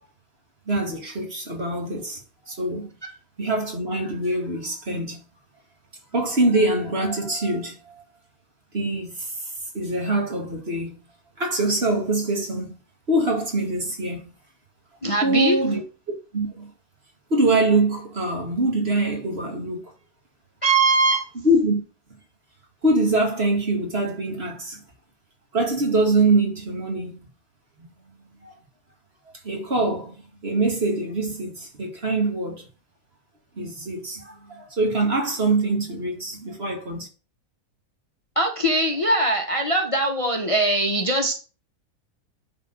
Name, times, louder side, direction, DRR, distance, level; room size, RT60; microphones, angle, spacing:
voice 1, 0.7-2.2 2.5-2.9 3.4-5.2 6.1-8.0 8.7-9.3 9.7-10.9 11.4-12.8 13.1-14.3 15.2-15.8 16.3-16.7 17.3-19.8 21.4-21.8 22.8-24.8 25.5-27.2 27.8-27.9 28.4-28.5 29.4-30.2 30.4-32.7 33.6-37.1, right 2 dB, 40° right, 2.4 m, -24 dB
voice 2, 15.0-15.6 20.6-21.3 38.3-41.3, right 2 dB, 20° left, 1.3 m, -21 dB
10.5 x 4.4 x 6.6 m
omnidirectional pair, 1.6 m